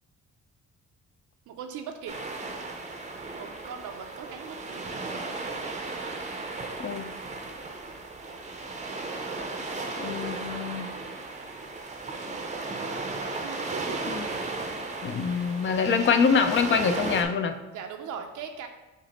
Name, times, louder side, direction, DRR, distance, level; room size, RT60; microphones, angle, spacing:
voice 1, 1.5-2.2 3.4-4.8 13.4-14.4 17.7-18.7, right 7 dB, 80° right, 4 dB, 0.6 m, -40 dB
sound 1, 2.1-17.3, right 3 dB, 25° right, 0.6 m, -35 dB
voice 2, 6.8-7.1 10.0-10.9 14.1-14.2 15.0-17.6, left 5 dB, 40° left, 9 dB, 0.4 m, -25 dB
6.0 x 2.1 x 4.1 m, 1.0 s
cardioid pair, 90°, 30 cm